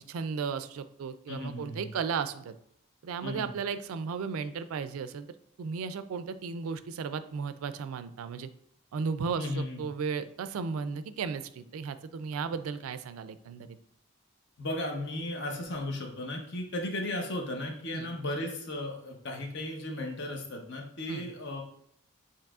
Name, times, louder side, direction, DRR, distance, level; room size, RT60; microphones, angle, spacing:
voice 1, 0.0-2.5 3.0-5.3 5.6-8.5 8.9-13.7 17.9-18.1 21.1-21.3, right 5 dB, 90° right, 12 dB, 0.3 m, -35 dB
voice 2, 1.3-1.9 3.2-3.5 9.4-9.8 14.6-21.6, left 1 dB, 55° left, 2 dB, 0.8 m, -35 dB
7.1 x 2.9 x 2.4 m, 0.72 s
head